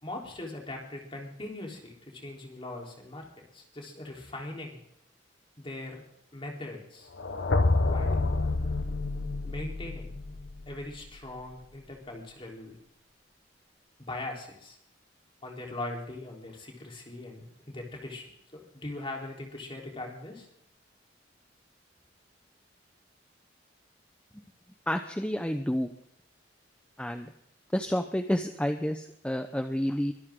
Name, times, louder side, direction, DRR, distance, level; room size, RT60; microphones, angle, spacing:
voice 1, 0.0-3.3 3.5-4.8 5.6-6.1 6.3-7.1 7.8-8.4 9.4-10.1 10.7-12.8 14.0-14.8 15.4-18.2 18.5-20.5, left 2 dB, 30° left, 0 dB, 3.8 m, -40 dB
sound 1, 7.2-11.2, left 2 dB, 90° left, 1.2 m, -28 dB
voice 2, 24.9-25.9 27.0-27.3 27.7-30.1, equal, 5° left, 7 dB, 0.8 m, -29 dB
23.5 x 13.0 x 3.8 m, 0.74 s
head